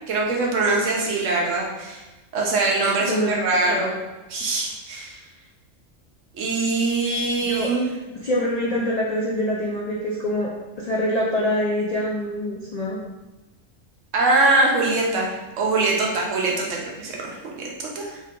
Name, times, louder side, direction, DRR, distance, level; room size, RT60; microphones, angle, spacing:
voice 1, 0.1-2.0 2.3-3.9 4.3-5.2 6.3-8.0 14.1-18.2, right 3 dB, 75° right, -2 dB, 1.1 m, -23 dB
voice 2, 3.1-3.4 3.7-3.9 7.5-7.7 8.2-10.5 10.8-13.0, left 1 dB, 65° left, -3 dB, 0.4 m, -25 dB
3.3 x 2.8 x 3.5 m, 1.1 s
omnidirectional pair, 1.3 m